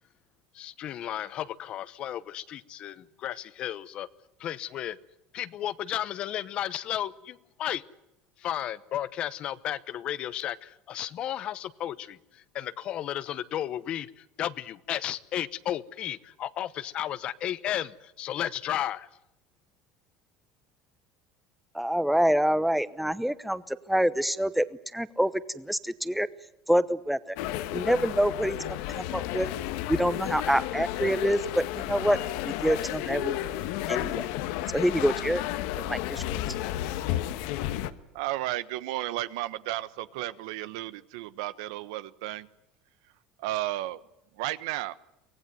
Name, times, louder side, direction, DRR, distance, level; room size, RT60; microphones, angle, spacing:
voice 1, 0.5-4.1 4.4-5.0 5.3-7.8 8.4-19.1, left 11 dB, 40° left, 17 dB, 1.0 m, -33 dB
voice 2, 21.7-24.7 24.9-26.3 26.7-27.4 27.7-29.5 29.9-32.2 32.4-33.4 33.9-34.1 34.7-35.4 35.8-36.4, equal, ahead, 15 dB, 0.9 m, -26 dB
sound 1, 27.4-37.9, left 13 dB, 75° left, 1.3 m, -32 dB
voice 3, 38.1-42.5 43.4-44.0 44.4-44.9, right 16 dB, 85° right, 15 dB, 1.2 m, -33 dB
24.0 x 18.5 x 9.4 m, 0.86 s
cardioid pair, 150°, 3 cm